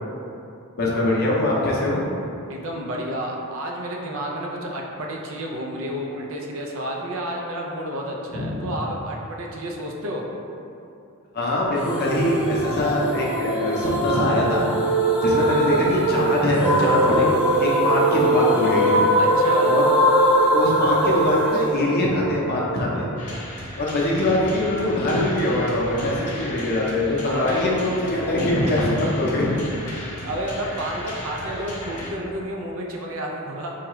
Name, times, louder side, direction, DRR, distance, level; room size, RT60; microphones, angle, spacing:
voice 1, 0.8-2.0 8.3-8.8 11.3-14.7 15.2-19.0 19.6-19.8 20.1-23.1 23.8-29.5, left 1 dB, 45° left, -4 dB, 0.6 m, -23 dB
voice 2, 2.5-10.2 19.2-19.8 27.2-27.7 28.6-28.7 30.2-33.7, right 1 dB, 60° right, 0 dB, 0.5 m, -30 dB
sound 1, 11.8-22.8, right 1 dB, 5° right, 0.5 m, -21 dB
sound 2, 23.2-32.1, left 1 dB, 80° left, 0.7 m, -36 dB
4.5 x 2.4 x 3.0 m, 2.7 s
head